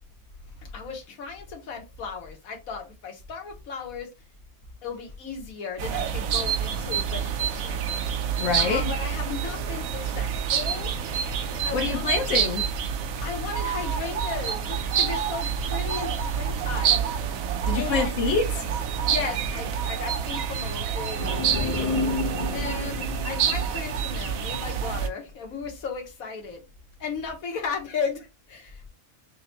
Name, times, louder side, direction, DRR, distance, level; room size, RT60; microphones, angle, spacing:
voice 1, 0.6-4.1 4.8-7.9 8.5-10.9 11.5-12.1 13.2-17.1 17.7-18.1 19.0-21.9 22.5-26.6 27.0-28.9, left 5 dB, 90° left, 1.5 m, -35 dB
sound 1, 5.8-25.1, right 8 dB, 80° right, 1.0 m, -28 dB
voice 2, 8.4-8.8 11.7-12.7 17.7-18.5, left 4 dB, 65° left, 1.4 m, -25 dB
sound 2, 21.1-24.8, left 3 dB, 40° left, 0.5 m, -31 dB
6.4 x 2.1 x 2.7 m
omnidirectional pair, 1.4 m